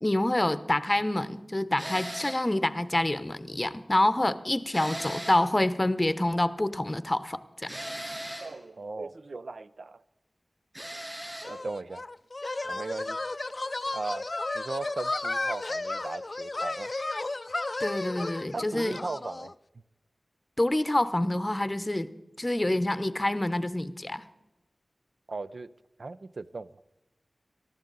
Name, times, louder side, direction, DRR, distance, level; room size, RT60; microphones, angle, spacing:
voice 1, 0.0-7.7 17.8-19.0 20.6-22.1 22.4-24.2, left 1 dB, 25° left, 13 dB, 0.8 m, -27 dB
sound 1, 1.8-2.5 4.7-5.5 7.7-8.5 10.7-11.5, equal, 15° right, 5.2 m, -38 dB
voice 2, 8.4-10.0 11.4-12.0 12.6-13.2 13.9-14.3 14.5-16.9 18.5-19.5 25.3-25.7 26.0-26.7, right 3 dB, 70° right, 14 dB, 0.5 m, -37 dB
sound 2, 11.4-19.5, left 2 dB, 45° left, 0.4 m, -33 dB
19.0 x 13.5 x 4.0 m, 0.98 s
wide cardioid pair, 60°, 0 cm